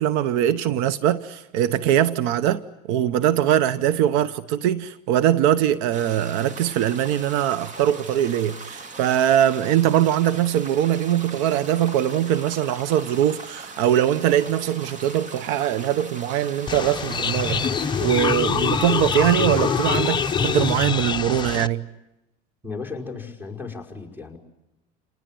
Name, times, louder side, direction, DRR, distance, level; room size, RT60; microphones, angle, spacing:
voice 1, 0.0-2.6 2.9-21.8, right 11 dB, 75° right, 0.9 m, -22 dB
sound 1, 5.9-20.8, right 3 dB, 35° right, 2.3 m, -40 dB
sound 2, 16.7-21.7, left 6 dB, 20° left, 0.9 m, -24 dB
voice 2, 22.6-24.4, left 4 dB, 10° right, 5.6 m, -35 dB
28.0 x 20.0 x 9.3 m
supercardioid pair, 110°, 21 cm